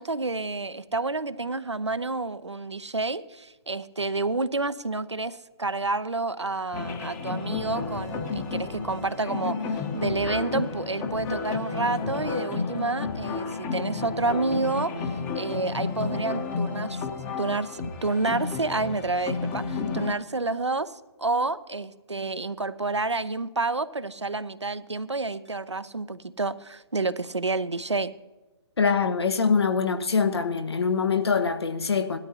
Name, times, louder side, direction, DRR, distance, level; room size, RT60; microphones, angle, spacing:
voice 1, 0.0-17.0 17.4-28.1, right 3 dB, 85° right, 0.7 m, -29 dB
sound 1, 6.7-20.1, left 4 dB, 15° left, 1.0 m, -31 dB
voice 2, 28.8-32.2, left 5 dB, 65° left, 1.1 m, -24 dB
17.5 x 13.0 x 2.8 m
figure-of-eight pair, 135°, 14 cm